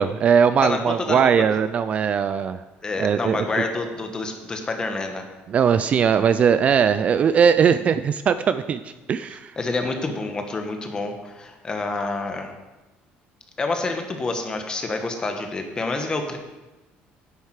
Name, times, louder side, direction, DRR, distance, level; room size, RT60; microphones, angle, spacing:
voice 1, 0.0-2.6 3.0-3.5 5.5-8.8 9.1-9.5, right 7 dB, 35° right, 12 dB, 0.3 m, -19 dB
voice 2, 0.6-1.3 2.8-5.3 9.6-12.6 13.6-16.4, left 3 dB, 20° left, 5 dB, 1.2 m, -28 dB
10.0 x 8.2 x 4.8 m, 1.1 s
cardioid pair, 155°, 4 cm